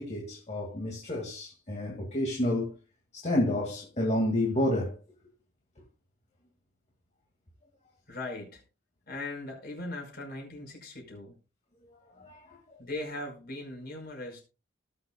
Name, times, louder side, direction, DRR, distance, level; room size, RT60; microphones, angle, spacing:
voice 1, 0.0-2.7 3.1-5.0 12.2-12.6, left 1 dB, 35° left, 2.1 m, -30 dB
voice 2, 8.1-8.6 9.1-11.3 12.8-14.4, left 2 dB, 50° left, 5.1 m, -39 dB
18.5 x 7.0 x 2.3 m
head